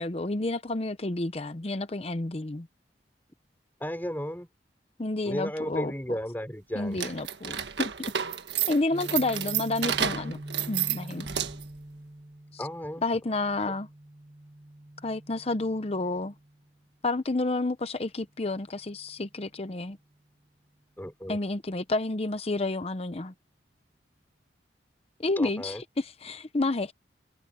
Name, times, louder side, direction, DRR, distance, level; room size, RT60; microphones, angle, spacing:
voice 1, 0.0-2.7 5.0-5.9 6.7-7.9 8.7-11.3 12.5-12.6 13.0-13.9 15.0-16.3 17.0-20.0 21.3-23.3 25.2-26.9, left 2 dB, 35° left, 0.8 m, -30 dB
voice 2, 3.8-4.5 5.2-7.1 12.6-13.0 13.7-13.8 21.0-21.4 25.4-25.8, equal, 10° left, 4.4 m, -34 dB
sound 1, 6.9-11.8, right 9 dB, 75° right, 1.5 m, -31 dB
Guitar, 8.9-16.8, right 1 dB, 25° right, 2.5 m, -44 dB
head